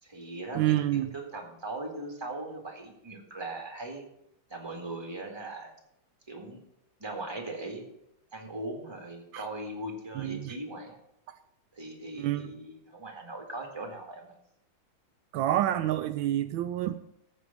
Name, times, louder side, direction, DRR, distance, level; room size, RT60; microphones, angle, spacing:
voice 1, 0.0-0.8 1.1-4.0 4.5-5.7 6.3-6.6 7.0-7.9 8.3-11.0 11.7-14.3, right 2 dB, 15° right, 2 dB, 2.0 m, -39 dB
voice 2, 0.5-1.1 9.3-9.4 10.2-10.5 12.2-12.5 15.3-17.0, right 13 dB, 80° right, 10 dB, 1.3 m, -28 dB
14.0 x 4.9 x 6.8 m, 0.78 s
omnidirectional pair, 2.1 m